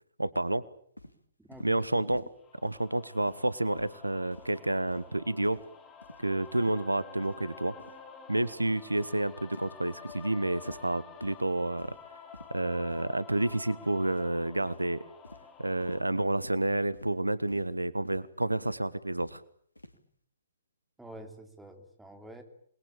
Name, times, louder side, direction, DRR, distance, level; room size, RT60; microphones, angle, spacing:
voice 1, 0.2-0.6 1.6-2.2 2.6-5.6 6.2-7.7 8.3-11.9 12.5-15.0 15.6-19.4, right 1 dB, 85° right, 18 dB, 1.4 m, -30 dB
sound 1, 1.0-1.2 1.5-1.7 2.1-2.3 2.6-2.9 3.2-3.5 3.8-4.0 4.3-4.6 4.9-5.1 5.4-5.7 6.0-6.2 6.6-6.8 7.2-7.4 7.8-8.0 8.4-8.6 9.0-9.2 9.5-9.7 10.1-10.3 10.7-10.9 11.2-11.4 11.8-12.1 12.3-12.5 12.9-13.0 13.5-13.8 14.1-14.4 14.6-14.9 15.2-15.5 15.8-16.1 16.4-16.6 16.9-17.1 17.5-17.7 18.1-18.2 18.6-18.8 19.2-19.4 19.8-20.0, left 1 dB, 85° left, 2.9 m, -49 dB
voice 2, 1.4-1.8 21.0-22.4, right 1 dB, 5° right, 5 dB, 3.6 m, -48 dB
sound 2, 2.4-16.0, left 6 dB, 15° left, 3.6 m, -50 dB
27.5 x 21.5 x 9.0 m, 0.63 s
figure-of-eight pair, 125°, 0 cm